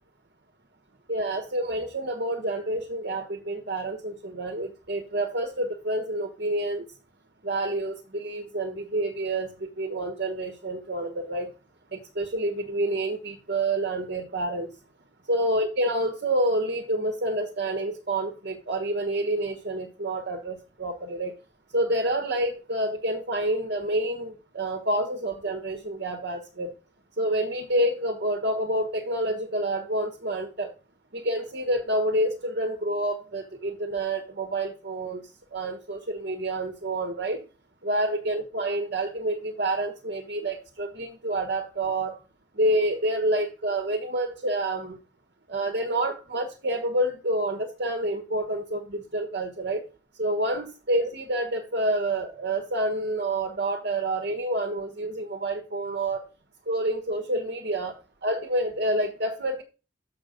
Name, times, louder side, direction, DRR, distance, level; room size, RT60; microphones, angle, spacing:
voice 1, 1.1-6.8 7.4-11.5 11.9-14.7 15.3-21.3 21.7-26.7 27.2-30.7 31.1-37.4 37.8-42.2 42.6-45.0 45.5-49.9 50.2-56.2 56.7-59.6, right 1 dB, 60° right, 5 dB, 1.5 m, -28 dB
6.9 x 6.8 x 5.1 m, 0.31 s
head